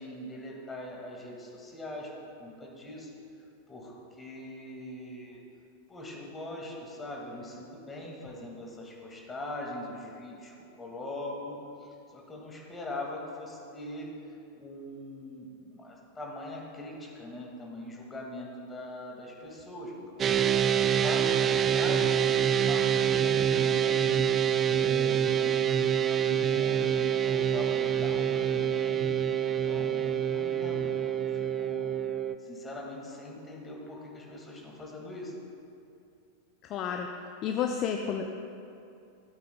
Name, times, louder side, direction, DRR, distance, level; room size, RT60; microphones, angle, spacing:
voice 1, 0.0-3.1 3.7-5.4 5.9-20.4 20.8-24.2 24.7-29.1 29.4-32.0 32.4-35.3, left 1 dB, 15° left, -2 dB, 2.1 m, -42 dB
sound 1, 20.2-32.3, right 9 dB, 25° right, 0.3 m, -26 dB
voice 2, 36.7-37.1 37.4-38.3, left 7 dB, 35° left, 3 dB, 0.5 m, -30 dB
16.0 x 8.4 x 2.3 m, 2.6 s
figure-of-eight pair, 90°, 0 cm